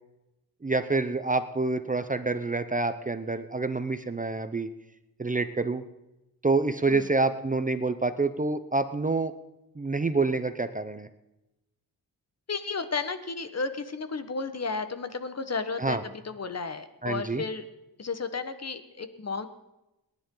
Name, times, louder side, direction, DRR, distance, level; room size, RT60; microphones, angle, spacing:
voice 1, 0.6-4.7 5.2-5.8 6.4-9.3 9.8-11.1 15.8-16.0 17.0-17.4, right 3 dB, 20° right, 10 dB, 0.7 m, -27 dB
voice 2, 12.5-17.6 18.0-19.5, left 4 dB, 40° left, 10 dB, 1.3 m, -33 dB
29.0 x 10.5 x 3.9 m, 0.95 s
cardioid pair, 90°, 39 cm